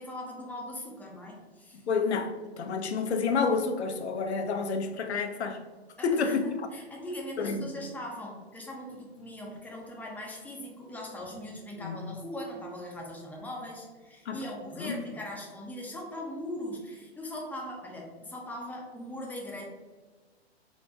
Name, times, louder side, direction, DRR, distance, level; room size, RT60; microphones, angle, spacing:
voice 1, 0.0-1.8 6.0-19.6, left 1 dB, 5° left, 0.6 m, -40 dB
voice 2, 1.9-2.3 2.6-5.6 6.0-6.5 7.4-7.7 11.8-12.0 14.3-14.4 14.8-14.9, left 5 dB, 85° left, 0.6 m, -29 dB
3.6 x 2.2 x 3.9 m
hypercardioid pair, 120°, 32 cm